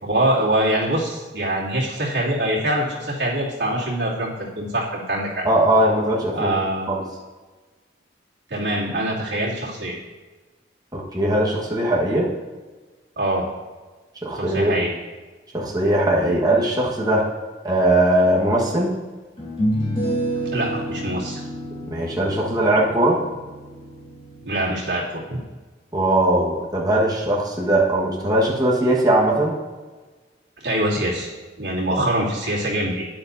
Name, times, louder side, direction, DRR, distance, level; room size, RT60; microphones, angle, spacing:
voice 1, 0.0-5.4 6.3-7.0 8.5-10.0 13.2-13.5 14.3-14.9 16.2-16.4 20.5-21.4 24.4-25.4 30.6-31.3 31.6-33.1, right 1 dB, 75° right, -6 dB, 2.7 m, -24 dB
voice 2, 5.4-6.5 6.9-7.0 10.9-12.3 14.2-14.7 15.5-17.3 17.6-18.9 21.9-23.2 25.9-29.5, right 1 dB, 20° right, -4 dB, 1.5 m, -20 dB
sound 1, 18.3-18.4 19.4-24.6, right 1 dB, 30° left, 2.8 m, -29 dB
12.0 x 9.9 x 2.7 m, 1.3 s
head